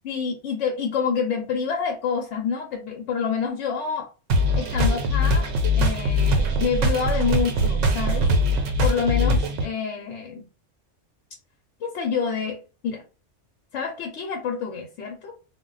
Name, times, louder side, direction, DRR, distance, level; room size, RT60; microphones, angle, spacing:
voice 1, 0.0-4.1 4.6-5.5 5.8-8.3 8.6-10.4 11.8-13.0 13.7-15.3, left 6 dB, 75° left, 0.9 m, -27 dB
sound 1, 4.3-9.7, equal, 90° right, 1.0 m, -22 dB
2.2 x 2.2 x 3.8 m
omnidirectional pair, 1.2 m